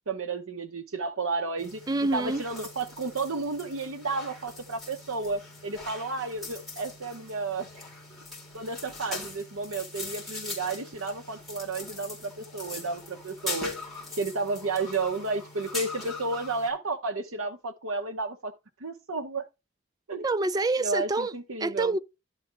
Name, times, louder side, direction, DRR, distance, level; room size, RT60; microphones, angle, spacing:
voice 1, 0.1-1.8 2.1-7.7 8.5-13.7 14.2-18.5 18.8-19.4 20.1-20.3 20.8-21.9, right 3 dB, 85° right, 0.9 m, -32 dB
sound 1, 1.6-16.7, left 3 dB, ahead, 3.8 m, -41 dB
voice 2, 1.9-2.4 20.2-22.0, right 2 dB, 20° right, 0.3 m, -27 dB
11.5 x 4.1 x 4.6 m
head